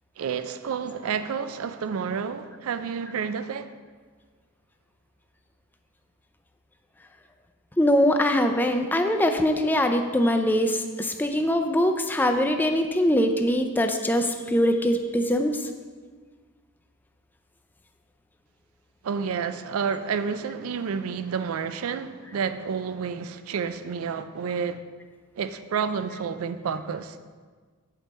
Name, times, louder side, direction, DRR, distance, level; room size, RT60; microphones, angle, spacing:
voice 1, 0.2-3.7 19.0-24.8 25.4-27.1, right 6 dB, 75° right, 0.4 m, -30 dB
voice 2, 7.8-15.6, equal, 10° left, 0.4 m, -22 dB
7.4 x 5.2 x 4.2 m
head